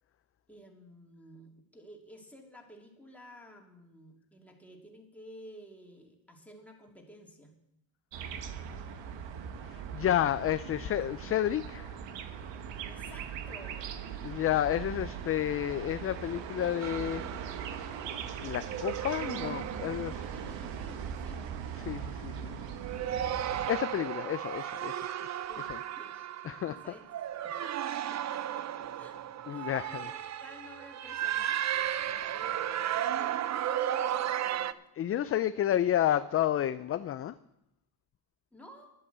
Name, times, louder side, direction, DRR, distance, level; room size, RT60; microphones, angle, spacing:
voice 1, 0.5-7.5 12.8-14.5 20.3-21.4 25.5-26.1 26.6-27.1 27.6-29.2 29.5-34.8 38.5-38.9, equal, 5° left, 0 dB, 2.6 m, -53 dB
sound 1, 8.1-23.7, right 7 dB, 70° right, 1.4 m, -40 dB
voice 2, 9.7-12.0 14.2-17.2 18.4-20.3 21.9-22.6 23.7-25.4 25.7-25.8 26.5-26.8 29.5-30.0 35.0-37.4, left 11 dB, 35° left, 12 dB, 0.4 m, -31 dB
sound 2, 16.8-18.2 18.6-21.1 21.6-22.0 22.7-34.7, right 11 dB, 40° right, 0.6 m, -35 dB
11.0 x 8.7 x 8.0 m, 0.83 s
cardioid pair, 110°, 44 cm